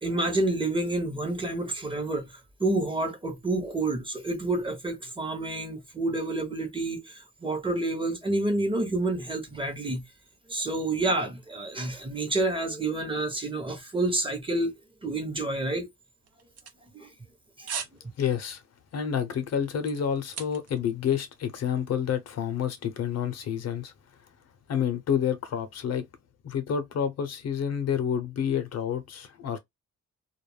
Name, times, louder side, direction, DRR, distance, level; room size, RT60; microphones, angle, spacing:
voice 1, 0.0-10.0 10.5-14.7 15.0-15.9 16.9-17.1 17.6-17.7, right 2 dB, 15° right, 0.9 m, -29 dB
sound 1, 16.3-17.3 17.7-18.0 18.4-18.6 19.1-20.9 21.1-21.2, right 7 dB, 55° right, 0.8 m, -38 dB
voice 2, 18.2-18.6 18.9-23.9 24.7-26.0 26.4-29.6, left 8 dB, 60° left, 0.7 m, -29 dB
2.4 x 2.0 x 3.2 m
cardioid pair, 90°, 30 cm